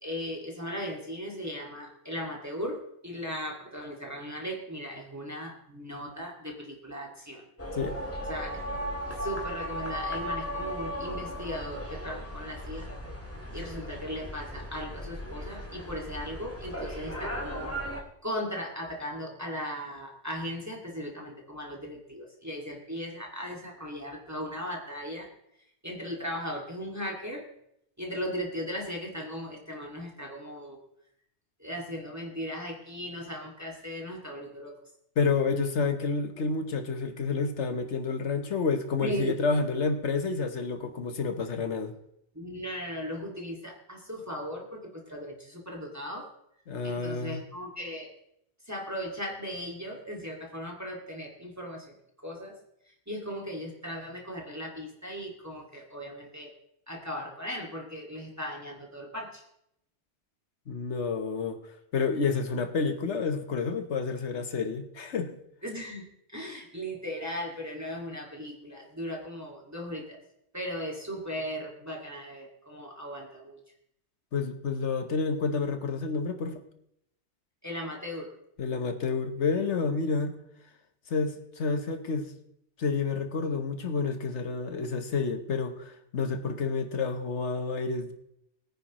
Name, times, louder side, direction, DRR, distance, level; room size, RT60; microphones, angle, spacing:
voice 1, 0.0-7.5 8.3-8.6 9.2-12.9 13.5-17.7 18.2-25.3 25.8-27.4 28.0-30.8 31.6-34.7 39.0-39.3 42.3-46.3 46.8-48.1 48.7-52.0 52.2-52.5 52.9-56.5 56.9-59.4 65.6-66.0 66.3-70.2 70.5-73.6 77.6-78.3, equal, 15° right, -1 dB, 2.1 m, -37 dB
sound 1, 7.6-18.0, equal, 10° left, 1.7 m, -36 dB
voice 2, 35.2-41.9 46.7-47.4 60.7-65.4 74.3-76.6 78.6-80.4 81.1-82.3 82.8-88.1, left 4 dB, 85° left, 7 dB, 1.4 m, -29 dB
21.0 x 9.5 x 3.1 m, 0.76 s
omnidirectional pair, 1.2 m